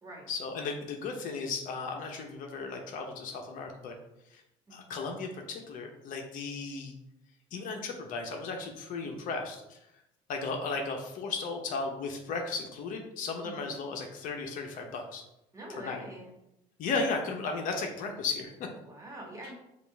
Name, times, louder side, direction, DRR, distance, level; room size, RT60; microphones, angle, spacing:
voice 1, 0.3-4.0 4.3-4.4 4.7-6.9 7.5-9.8 10.3-15.2 15.8-16.0 16.8-18.7, left 4 dB, 60° left, 3 dB, 0.8 m, -35 dB
voice 2, 15.5-16.4 18.8-19.5, right 1 dB, 20° right, -1 dB, 1.4 m, -45 dB
5.1 x 2.5 x 3.3 m, 0.87 s
supercardioid pair, 85°, 15 cm